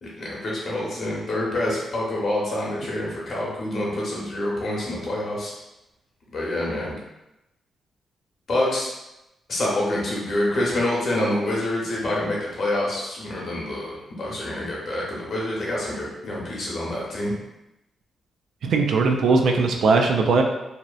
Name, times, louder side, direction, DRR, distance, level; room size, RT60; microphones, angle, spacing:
voice 1, 0.0-5.5 6.3-6.9 8.5-8.9 9.5-17.4, left 1 dB, 55° left, -4 dB, 0.8 m, -27 dB
voice 2, 18.6-20.4, right 4 dB, 75° right, 3 dB, 0.3 m, -19 dB
2.7 x 2.0 x 2.3 m, 0.93 s
cardioid pair, 95°, 0 cm